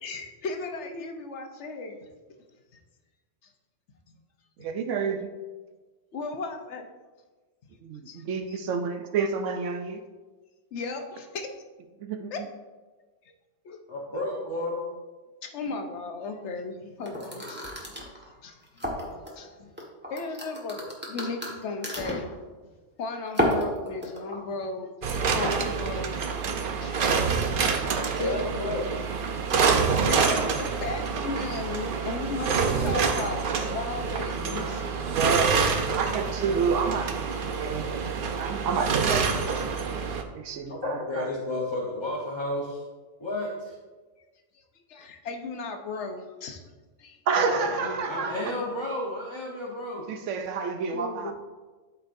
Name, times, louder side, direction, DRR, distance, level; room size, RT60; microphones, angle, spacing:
voice 1, 0.0-2.1 4.1-4.2 6.1-6.9 8.1-8.2 8.5-8.6 10.7-11.5 12.3-12.4 13.6-13.8 15.4-17.9 18.4-19.7 20.1-22.3 23.0-24.9 25.3-26.1 26.8-27.3 27.7-27.9 28.2-28.7 30.0-35.1 39.7-39.9 40.7-40.8 44.5-44.6 44.9-46.6 47.0-48.6 50.9-51.3, left 3 dB, 70° left, 5 dB, 1.1 m, -36 dB
voice 2, 4.6-5.3 7.8-10.0 12.0-12.5 35.1-39.7 40.3-41.3 47.3-48.5 50.1-51.3, right 5 dB, 80° right, 6 dB, 0.9 m, -30 dB
voice 3, 13.9-14.8 28.0-28.8 40.7-42.8 43.2-43.8 47.5-50.1, left 1 dB, 25° left, -4 dB, 1.0 m, -32 dB
sound 1, 17.0-19.3 19.8-22.3 23.3-24.4, equal, 10° right, 1.3 m, -30 dB
sound 2, 25.0-40.2, right 5 dB, 55° right, 0.7 m, -27 dB
12.5 x 4.6 x 2.6 m, 1.3 s
omnidirectional pair, 1.3 m